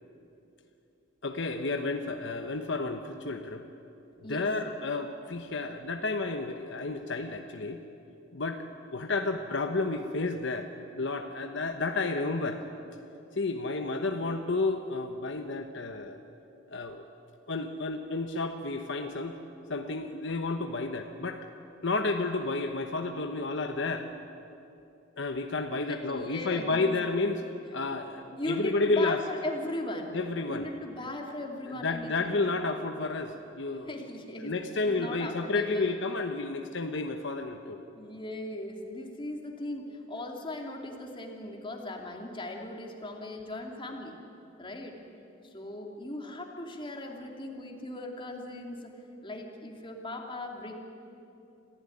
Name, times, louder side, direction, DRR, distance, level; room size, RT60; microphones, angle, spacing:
voice 1, 1.2-3.6 4.3-7.8 8.3-8.7 8.9-10.7 11.0-12.7 13.3-16.2 16.7-17.0 17.5-19.4 19.7-21.4 21.8-24.1 25.2-27.4 27.7-29.2 30.1-30.7 31.7-34.0 34.4-37.8, left 3 dB, 65° left, 5 dB, 1.1 m, -31 dB
voice 2, 25.9-26.8 28.4-30.2 30.5-32.3 33.9-35.9 37.9-44.2 44.6-45.0 45.4-48.9 49.2-50.7, left 1 dB, 25° left, 2 dB, 2.8 m, -38 dB
26.5 x 15.5 x 9.9 m, 2.8 s
head